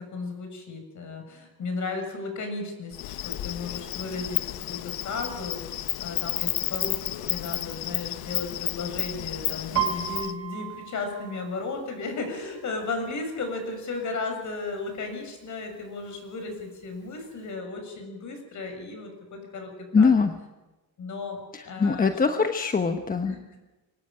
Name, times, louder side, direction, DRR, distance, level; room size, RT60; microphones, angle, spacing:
voice 1, 0.0-5.6 6.0-20.2 21.0-22.2 23.2-23.6, left 3 dB, 50° left, 5 dB, 6.8 m, -35 dB
Insect, 2.9-10.3, left 15 dB, 70° left, 1.0 m, -32 dB
Piano, 9.7-13.4 13.7-14.2 14.5-15.1 15.7-15.8 16.1-17.1 17.5-17.6, right 11 dB, 40° right, 2.0 m, -34 dB
voice 2, 19.9-20.3 21.5-23.4, left 5 dB, 25° left, 6 dB, 1.1 m, -22 dB
24.0 x 18.5 x 9.1 m, 1.1 s
cardioid pair, 145°, 37 cm